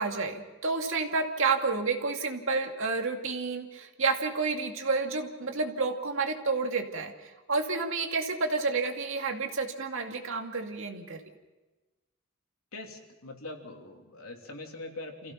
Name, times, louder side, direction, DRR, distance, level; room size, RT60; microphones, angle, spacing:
voice 1, 0.0-11.2, right 4 dB, 70° right, 3 dB, 2.4 m, -30 dB
voice 2, 12.7-15.3, left 2 dB, 85° left, 2 dB, 3.3 m, -42 dB
28.0 x 16.0 x 5.8 m, 1.2 s
head